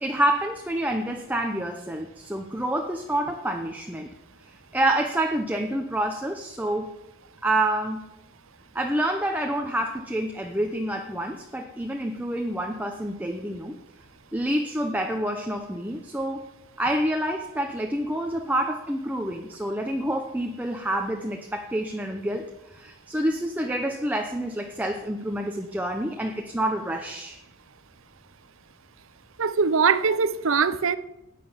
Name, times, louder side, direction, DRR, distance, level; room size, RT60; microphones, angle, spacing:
voice 1, 0.0-4.1 4.7-6.9 7.4-8.0 8.7-13.8 14.3-16.4 16.8-27.4, right 1 dB, 10° right, 3 dB, 0.8 m, -28 dB
voice 2, 29.4-31.0, right 5 dB, 75° right, 14 dB, 0.7 m, -22 dB
12.0 x 9.4 x 6.9 m, 0.92 s
head